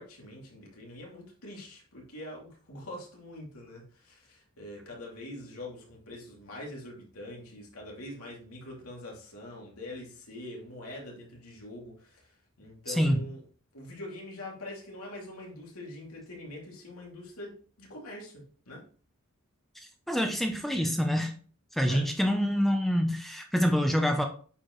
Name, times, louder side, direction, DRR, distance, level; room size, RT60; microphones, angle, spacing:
voice 1, 0.0-12.3 12.6-13.4 13.7-18.8 21.8-22.1, left 1 dB, 85° left, 2.7 m, -44 dB
voice 2, 12.9-13.2 20.1-21.3 21.7-24.2, equal, ahead, 0.7 m, -26 dB
8.5 x 4.8 x 3.1 m
head